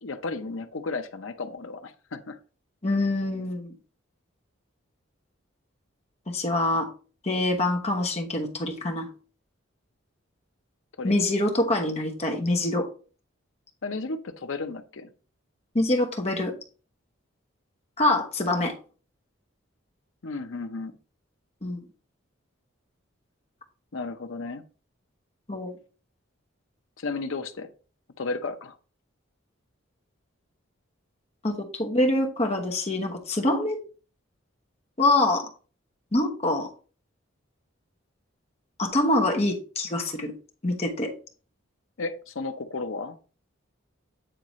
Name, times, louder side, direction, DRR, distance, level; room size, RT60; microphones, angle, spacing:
voice 1, 0.0-2.4 11.0-11.1 13.8-15.1 20.2-20.9 23.9-24.6 27.0-27.7 28.2-28.8 42.0-43.2, left 3 dB, 75° left, 0.7 m, -33 dB
voice 2, 2.8-3.7 6.3-6.9 7.2-9.1 11.0-12.9 15.7-16.5 18.0-18.7 21.6-21.9 25.5-25.8 31.4-33.8 35.0-35.5 36.1-36.7 38.8-40.3 40.6-41.1, left 2 dB, 30° left, 1.1 m, -25 dB
8.9 x 3.8 x 3.1 m
head